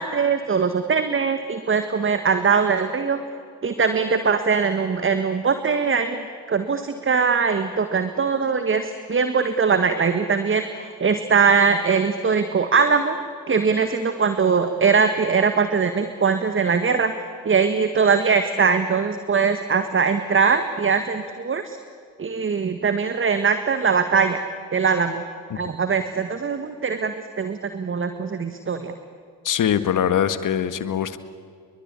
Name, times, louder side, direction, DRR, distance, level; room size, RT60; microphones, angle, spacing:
voice 1, 0.0-3.2 3.6-6.2 6.5-13.2 13.5-17.1 17.4-21.8 22.2-24.4 24.7-25.2 25.6-28.9, right 5 dB, 25° right, 9 dB, 1.7 m, -21 dB
voice 2, 29.4-31.2, left 9 dB, 45° left, 12 dB, 1.8 m, -22 dB
28.5 x 23.0 x 8.5 m, 2.2 s
figure-of-eight pair, 50°, 44 cm